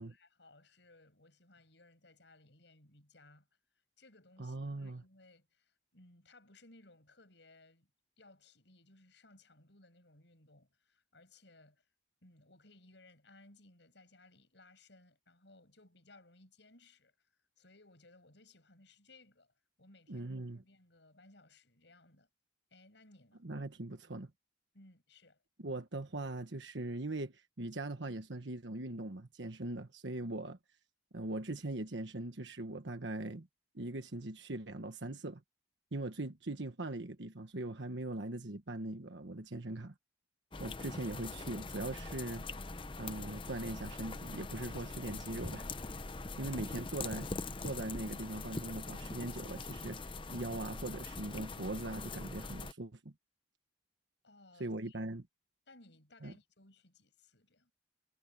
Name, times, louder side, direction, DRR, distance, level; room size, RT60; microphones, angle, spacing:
voice 1, 0.0-3.5 4.0-7.9 8.2-11.9 12.2-17.3 17.6-19.5 19.8-20.3 20.6-22.3 22.7-23.4 24.7-25.4 54.2-55.0 55.7-57.7, left 2 dB, 70° left, 6.3 m, -62 dB
voice 2, 4.4-5.0 20.1-20.6 23.4-24.3 25.6-30.6 31.1-33.5 33.7-35.4 35.9-39.9 40.6-42.4 43.0-45.7 46.4-47.3 47.6-50.0 50.3-53.1 54.6-55.3 56.2-56.3, right 2 dB, 75° right, 1.3 m, -41 dB
sound 1, 40.5-52.7, left 3 dB, 25° left, 0.8 m, -43 dB
head